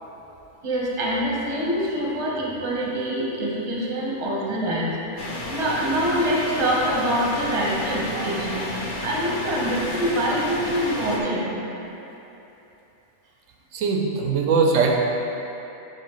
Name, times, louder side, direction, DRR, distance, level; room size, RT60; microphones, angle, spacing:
voice 1, 0.6-4.9 5.5-11.5 14.5-14.6, equal, 25° right, -5 dB, 0.9 m, -25 dB
sound 1, 5.2-11.2, left 1 dB, 45° left, 0.8 m, -31 dB
voice 2, 13.7-15.0, right 4 dB, 65° right, 0 dB, 1.0 m, -20 dB
7.7 x 5.4 x 3.0 m, 3.0 s
omnidirectional pair, 1.5 m